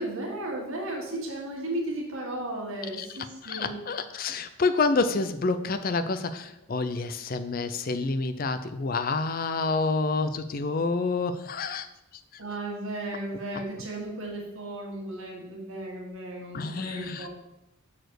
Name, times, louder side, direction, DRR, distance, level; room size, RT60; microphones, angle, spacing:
voice 1, 0.0-3.8 12.4-17.3, right 1 dB, 70° right, -1 dB, 1.9 m, -35 dB
voice 2, 3.4-11.9 16.5-17.3, left 3 dB, 40° left, 11 dB, 0.4 m, -28 dB
6.7 x 4.2 x 6.4 m, 0.89 s
head